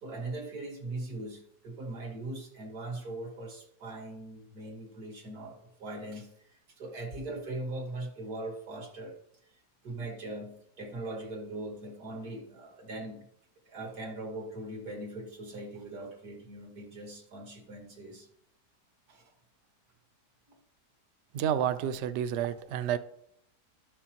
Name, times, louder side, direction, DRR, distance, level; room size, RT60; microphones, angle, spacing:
voice 1, 0.0-9.2 9.8-13.3 13.7-18.3 19.1-19.3 20.5-20.6, right 2 dB, 60° right, 2 dB, 1.9 m, -40 dB
voice 2, 21.3-23.0, right 9 dB, 90° right, 12 dB, 0.6 m, -30 dB
12.5 x 6.3 x 2.9 m, 0.74 s
omnidirectional pair, 1.8 m